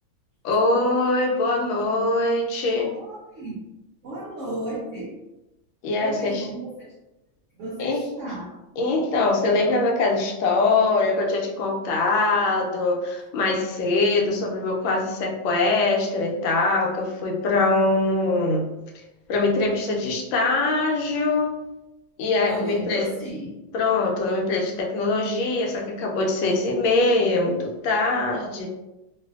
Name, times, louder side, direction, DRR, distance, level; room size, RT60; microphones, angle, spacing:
voice 1, 0.4-2.9 5.8-6.5 7.8-8.0 8.8-18.7 19.3-21.6 22.2-23.1 23.7-28.7, left 3 dB, 80° left, 0 dB, 1.3 m, -23 dB
voice 2, 2.8-3.6 4.0-5.1 6.0-6.9 7.6-8.5 22.4-23.5, right 1 dB, 80° right, -6 dB, 0.6 m, -34 dB
3.2 x 2.4 x 2.3 m, 0.99 s
omnidirectional pair, 2.1 m